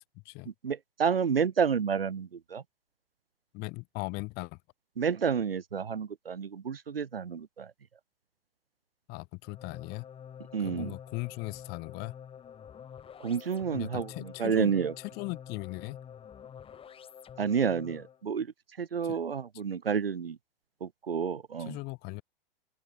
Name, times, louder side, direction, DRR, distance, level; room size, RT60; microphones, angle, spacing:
voice 1, 0.6-2.6 5.0-7.7 10.5-10.9 13.2-14.1 14.4-14.9 17.4-18.5 18.8-20.4 20.8-21.8, right 6 dB, 80° right, 1.0 m, -30 dB
voice 2, 3.5-4.6 9.1-10.0 10.6-12.1 13.7-16.0 19.0-19.2 21.6-22.2, left 26 dB, 35° left, 1.3 m, -38 dB
sound 1, 9.4-18.2, left 8 dB, 20° left, 3.5 m, -48 dB
open air
figure-of-eight pair, 105°, 29 cm